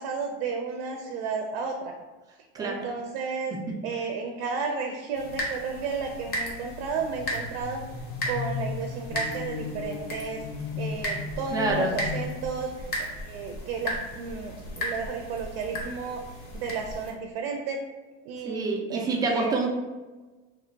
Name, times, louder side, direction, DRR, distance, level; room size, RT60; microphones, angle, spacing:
voice 1, 0.0-1.9 2.6-3.5 3.8-7.8 8.3-10.4 10.8-12.9 13.2-16.2 16.5-17.8 18.2-19.6, right 5 dB, 80° right, 2 dB, 0.5 m, -33 dB
voice 2, 2.5-2.9 11.5-11.9 18.4-19.7, right 3 dB, 15° right, -1 dB, 0.3 m, -27 dB
sound 1, 5.1-17.1, equal, 35° left, 0.7 m, -36 dB
sound 2, 7.0-12.3, left 5 dB, 80° left, 0.6 m, -36 dB
3.1 x 2.2 x 3.8 m, 1.2 s
cardioid pair, 155°, 29 cm